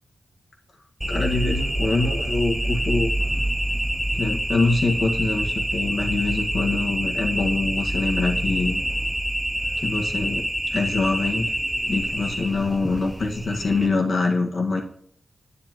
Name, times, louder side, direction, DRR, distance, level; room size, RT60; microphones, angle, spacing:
sound 1, 1.0-13.9, right 1 dB, 5° right, 0.5 m, -26 dB
voice 1, 1.1-3.1 4.2-8.8 9.8-11.5 11.9-14.8, left 3 dB, 55° left, 0 dB, 1.9 m, -24 dB
9.8 x 9.7 x 3.1 m, 0.62 s
wide cardioid pair, 125°, 0 cm